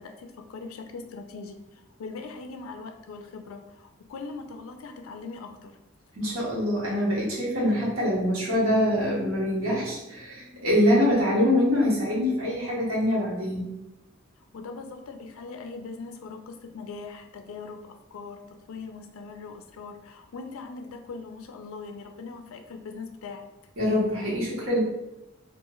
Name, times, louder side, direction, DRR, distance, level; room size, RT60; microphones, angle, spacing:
voice 1, 0.0-5.8 14.5-23.5, left 4 dB, 75° left, 6 dB, 0.4 m, -41 dB
voice 2, 6.1-13.7 23.8-24.8, left 1 dB, 75° right, -6 dB, 1.2 m, -24 dB
3.0 x 2.4 x 2.3 m, 0.95 s
head